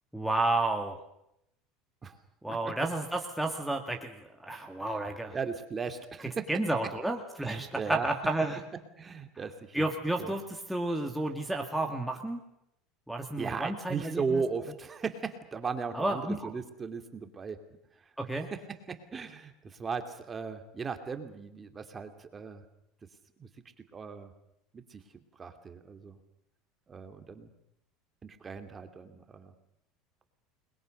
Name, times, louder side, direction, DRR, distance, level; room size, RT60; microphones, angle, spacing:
voice 1, 0.1-1.0 2.4-4.1 4.4-5.4 6.5-8.6 9.7-12.4 13.1-14.4 15.9-16.5 18.2-18.5, right 2 dB, ahead, 2 dB, 2.1 m, -31 dB
voice 2, 5.3-6.5 7.4-8.1 9.0-9.9 10.2-10.3 13.4-17.6 18.5-22.6 23.4-23.5 23.9-24.3 24.7-25.0 25.4-26.2 26.9-27.5 28.2-29.5, right 5 dB, 20° right, 7 dB, 2.6 m, -37 dB
30.0 x 21.5 x 6.6 m, 0.79 s
supercardioid pair, 135°, 0 cm